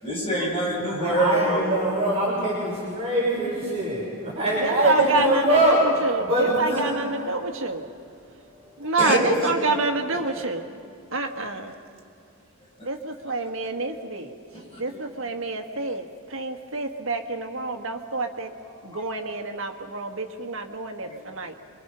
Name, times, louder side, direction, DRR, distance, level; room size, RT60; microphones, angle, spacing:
voice 1, 0.0-1.7 4.5-4.6 5.1-5.2 9.0-9.8 11.7-11.8 14.5-15.1 18.6-19.0 21.0-21.2, right 1 dB, 25° left, -4 dB, 6.3 m, -26 dB
voice 2, 0.9-5.8 6.2-7.0, right 1 dB, 25° right, -6 dB, 5.7 m, -23 dB
voice 3, 4.6-7.8 8.8-10.6 11.1-11.7 12.8-14.3 14.8-16.0 16.3-18.5 18.9-21.5, right 3 dB, 60° right, 5 dB, 1.7 m, -27 dB
27.0 x 23.5 x 5.6 m, 2.6 s
head